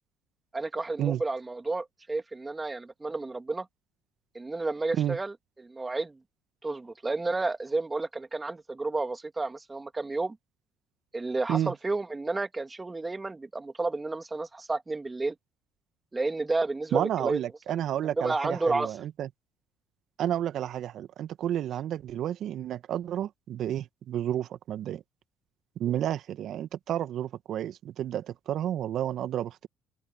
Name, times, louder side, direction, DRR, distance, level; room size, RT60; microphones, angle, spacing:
voice 1, 0.5-3.7 4.3-6.2 6.6-10.4 11.1-15.3 16.1-17.4 17.7-19.0 25.9-26.0, right 3 dB, 20° right, 2.7 m, -31 dB
voice 2, 16.9-19.3 20.2-25.0 25.8-29.7, right 11 dB, 60° right, 1.8 m, -31 dB
hypercardioid pair, 60°, 0 cm